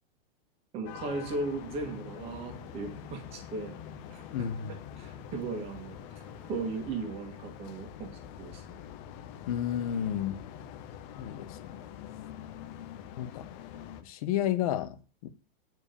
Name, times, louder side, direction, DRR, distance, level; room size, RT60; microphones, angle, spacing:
voice 1, 0.7-3.8 4.1-4.5 5.0-6.0 6.5-8.8, right 3 dB, 20° right, 1.9 m, -37 dB
sound 1, 0.8-14.0, left 9 dB, 20° left, 0.6 m, -45 dB
sound 2, 1.2-6.8, left 2 dB, 5° left, 2.0 m, -55 dB
voice 2, 4.3-4.8 9.5-10.4 11.2-11.8 13.2-13.5 14.0-15.0 15.2-15.3, left 10 dB, 40° left, 1.0 m, -31 dB
9.3 x 5.1 x 6.7 m
supercardioid pair, 175°, 30 cm